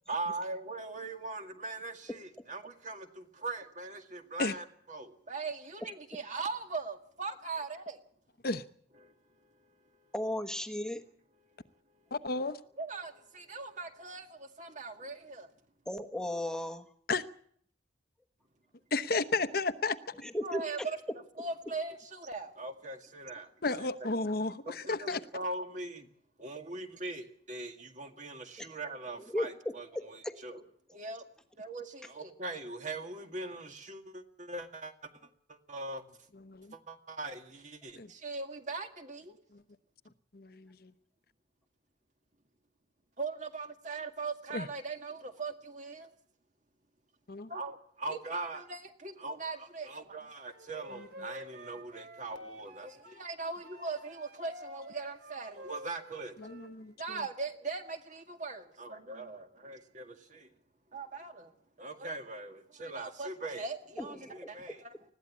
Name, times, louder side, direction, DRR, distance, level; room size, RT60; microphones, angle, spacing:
voice 1, 0.1-8.0 9.0-9.8 12.8-15.5 20.4-21.0 21.4-23.5 23.8-23.9 24.7-26.1 26.4-30.6 30.9-31.2 31.5-34.9 35.5-36.2 36.7-39.4 43.2-46.1 47.5-56.4 57.0-60.5 60.9-65.1, right 3 dB, 40° right, 2.0 m, -40 dB
voice 2, 10.1-11.1 15.9-16.9 20.2-20.9 28.6-28.7 29.3-30.4 64.0-64.3, left 1 dB, 5° left, 1.2 m, -36 dB
voice 3, 12.1-12.6 17.1-17.2 18.9-20.0 23.6-25.2 36.5-36.7 38.0-38.1 39.5-39.6 40.3-40.9 44.5-44.7 47.3-47.5 56.4-56.9, left 3 dB, 55° left, 0.9 m, -32 dB
Wind instrument woodwind instrument, 50.5-53.2 53.6-56.7, equal, 55° right, 4.0 m, -50 dB
20.5 x 15.5 x 8.5 m
head